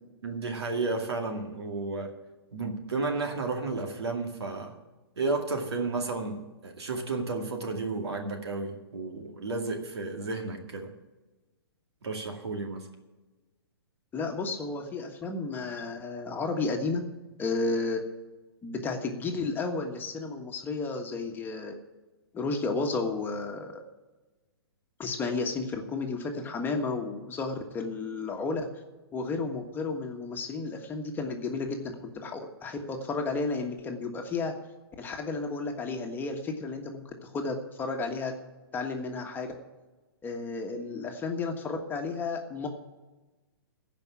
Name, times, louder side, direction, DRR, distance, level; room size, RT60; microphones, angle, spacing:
voice 1, 0.2-2.1 2.5-4.7 5.2-10.9 12.0-12.9, right 3 dB, 85° right, 3 dB, 2.3 m, -32 dB
voice 2, 14.1-17.0 17.4-18.0 18.6-21.7 22.3-23.8 25.0-28.7 29.1-34.5 35.0-38.3 38.7-39.5 40.2-42.7, left 3 dB, 15° left, 3 dB, 1.4 m, -32 dB
15.5 x 5.3 x 9.6 m, 1.2 s
hypercardioid pair, 135°, 13 cm